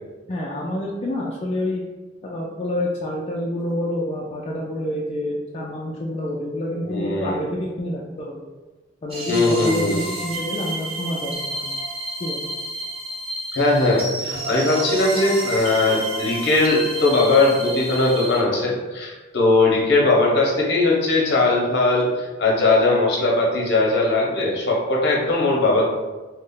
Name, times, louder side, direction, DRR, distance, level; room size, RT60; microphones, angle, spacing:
voice 1, 0.3-1.8 2.2-8.4 9.0-11.6 12.2-12.5, left 1 dB, 30° left, -4 dB, 0.3 m, -28 dB
voice 2, 6.8-7.4 9.3-10.0 13.5-25.9, left 2 dB, 60° left, -3 dB, 0.9 m, -19 dB
sound 1, 9.1-18.4, right 1 dB, 30° right, 0.8 m, -30 dB
3.1 x 2.1 x 3.7 m, 1.2 s
head